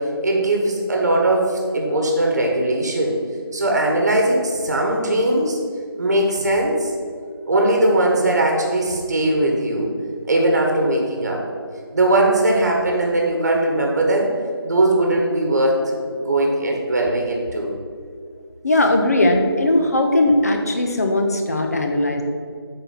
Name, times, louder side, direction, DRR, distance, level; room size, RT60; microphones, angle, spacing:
voice 1, 0.0-3.1 3.5-5.6 6.0-6.9 7.5-9.9 10.3-11.4 11.9-14.3 14.6-17.7, right 1 dB, 40° right, 0 dB, 1.3 m, -19 dB
voice 2, 18.6-22.2, left 1 dB, 35° left, 5 dB, 0.9 m, -18 dB
8.8 x 4.3 x 7.1 m, 2.1 s
figure-of-eight pair, 165°, 13 cm